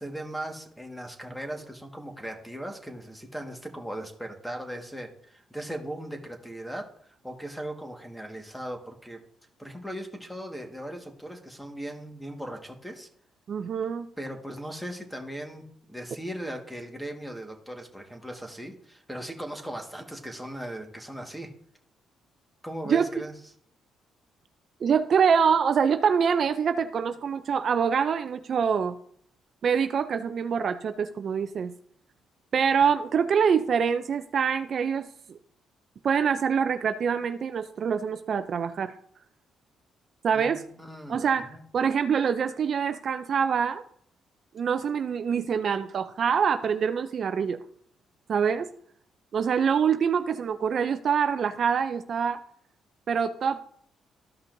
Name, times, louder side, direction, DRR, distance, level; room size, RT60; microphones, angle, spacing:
voice 1, 0.0-9.2 9.6-13.1 14.2-21.5 22.6-23.3 40.3-41.6, right 1 dB, ahead, 3 dB, 1.6 m, -38 dB
voice 2, 13.5-14.1 22.9-23.1 24.8-29.0 29.6-31.7 32.5-35.4 36.0-38.9 40.2-40.6 41.1-43.8 44.5-47.6 48.3-48.7 49.3-52.4 53.1-53.6, right 7 dB, 55° right, 10 dB, 0.5 m, -25 dB
13.5 x 5.5 x 2.6 m, 0.62 s
cardioid pair, 90°, 0 cm